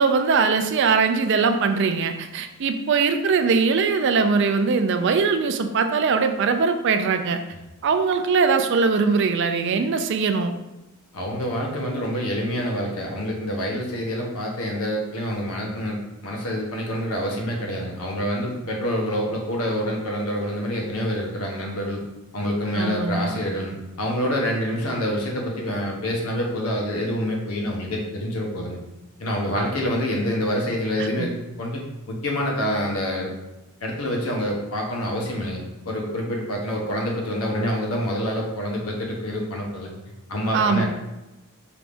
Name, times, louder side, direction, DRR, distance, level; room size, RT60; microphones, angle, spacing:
voice 1, 0.0-7.4 7.8-10.5 22.7-23.4 31.0-31.3 40.5-40.8, right 5 dB, 55° right, 8 dB, 0.4 m, -21 dB
voice 2, 11.1-22.0 22.3-28.8 29.2-31.3 31.6-31.8 32.1-33.3 33.8-35.6 35.8-39.9 40.3-40.8, equal, 85° left, -1 dB, 1.0 m, -27 dB
4.8 x 3.5 x 2.5 m, 1.0 s
head